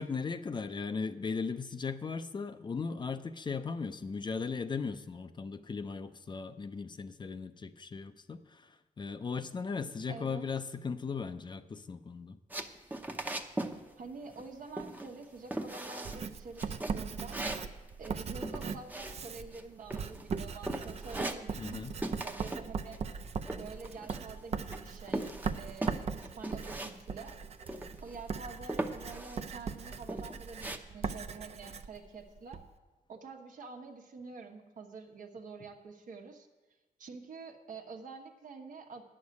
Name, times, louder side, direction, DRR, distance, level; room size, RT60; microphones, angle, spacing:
voice 1, 0.0-12.4 21.6-22.0, left 5 dB, 35° left, 10 dB, 0.5 m, -37 dB
voice 2, 10.1-10.4 14.0-17.4 18.0-23.0 23.5-25.3 25.6-27.4 28.0-32.6 33.1-36.5 37.0-39.0, right 4 dB, 70° right, 3 dB, 1.2 m, -47 dB
sound 1, 12.5-13.8 14.0-14.5 14.8-15.2 15.5-16.2 16.6-19.6 19.9-20.4 20.7-21.8 22.0-22.7 22.9-24.4 24.7-26.9 27.2-27.3 27.7-28.2 28.7-29.4 29.8-30.8, right 2 dB, 10° right, 0.7 m, -39 dB
Writing, 16.0-32.7, right 5 dB, 50° right, 0.5 m, -40 dB
9.6 x 6.5 x 8.3 m, 1.2 s
cardioid pair, 110°, 14 cm